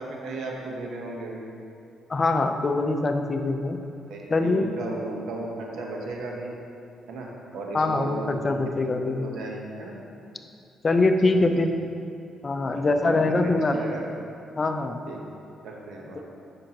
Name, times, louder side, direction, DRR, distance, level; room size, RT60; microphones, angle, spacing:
voice 1, 0.0-1.5 4.1-6.5 7.1-8.6 8.8-10.0 11.2-11.5 12.7-14.1 15.1-15.2 15.6-16.2, right 2 dB, 80° right, -1 dB, 1.1 m, -35 dB
voice 2, 2.1-3.8 4.3-4.7 7.7-9.3 10.8-11.7 12.4-13.8 14.6-15.0, left 3 dB, 35° left, 6 dB, 0.5 m, -23 dB
9.6 x 5.8 x 3.0 m, 2.6 s
cardioid pair, 90°, 0 cm